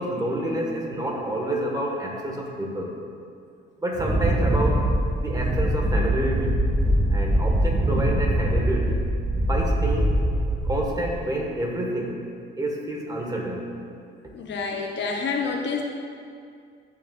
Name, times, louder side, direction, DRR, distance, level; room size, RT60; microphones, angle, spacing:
voice 1, 0.0-3.0 3.8-4.9 5.2-6.6 7.1-9.0 9.4-10.1 10.6-12.2 12.6-13.7, right 1 dB, 20° right, -1 dB, 1.8 m, -28 dB
Wind, 3.9-11.1, right 1 dB, 35° right, 1.8 m, -23 dB
voice 2, 14.3-15.9, left 4 dB, 65° left, 1 dB, 0.9 m, -28 dB
14.0 x 6.4 x 2.6 m, 2.4 s
cardioid pair, 90°, 20 cm